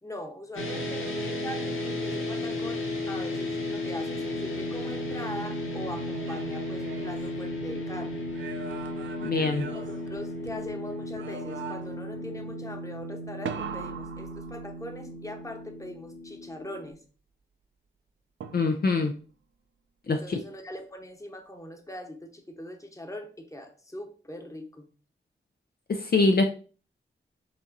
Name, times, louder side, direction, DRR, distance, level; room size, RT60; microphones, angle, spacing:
voice 1, 0.0-8.2 9.6-17.0 20.1-24.9, left 1 dB, 15° left, 4 dB, 0.9 m, -41 dB
sound 1, 0.5-16.9, left 1 dB, 80° left, 1.1 m, -34 dB
sound 2, 5.9-7.8 8.3-10.7 11.2-12.1 13.5-15.1 18.4-19.1, right 6 dB, 70° right, 0.4 m, -41 dB
voice 2, 9.2-9.7 18.5-19.1 20.1-20.4 25.9-26.4, left 3 dB, 50° left, 4 dB, 0.5 m, -24 dB
4.8 x 2.9 x 2.6 m, 0.38 s
cardioid pair, 45°, 20 cm